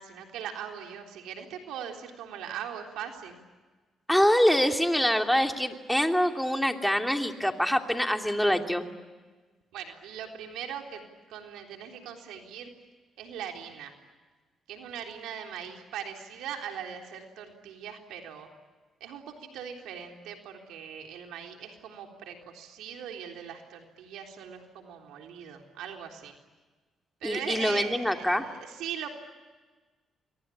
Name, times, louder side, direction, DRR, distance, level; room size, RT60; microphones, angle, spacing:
voice 1, 0.0-3.4 9.7-11.0 11.3-12.7 13.2-13.9 14.7-18.5 19.0-26.4 27.2-29.1, right 8 dB, 90° right, 3 dB, 3.7 m, -40 dB
voice 2, 4.1-8.9 27.2-28.5, equal, 5° left, 4 dB, 2.8 m, -25 dB
28.5 x 23.5 x 8.7 m, 1.3 s
cardioid pair, 90°, 0 cm